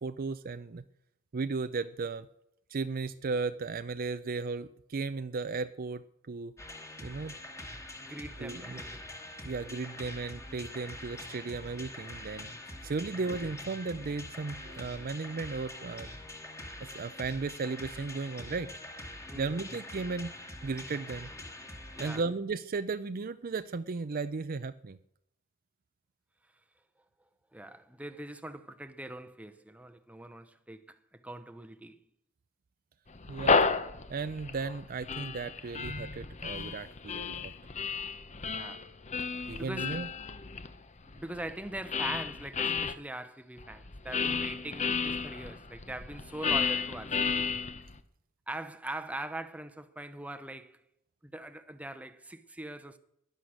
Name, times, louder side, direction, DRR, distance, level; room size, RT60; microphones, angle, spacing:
voice 1, 0.0-0.8 1.3-2.3 2.7-6.5 7.0-7.4 8.4-8.8 9.4-12.5 12.8-16.1 16.8-18.7 19.3-20.4 20.6-21.3 22.0-25.0 33.3-33.7 34.1-37.5 39.5-40.1, right 4 dB, 40° right, 0.5 m, -35 dB
sound 1, 6.6-22.2, left 1 dB, 15° left, 1.8 m, -44 dB
voice 2, 8.0-9.2 13.1-13.3 19.3-19.8 21.9-22.2 27.5-32.0 38.5-38.9 39.6-40.0 41.0-47.5 48.5-50.8 51.2-53.0, right 1 dB, 5° right, 0.8 m, -42 dB
sound 2, 33.1-43.0 43.6-48.0, left 5 dB, 30° left, 0.8 m, -33 dB
16.5 x 11.0 x 6.5 m
head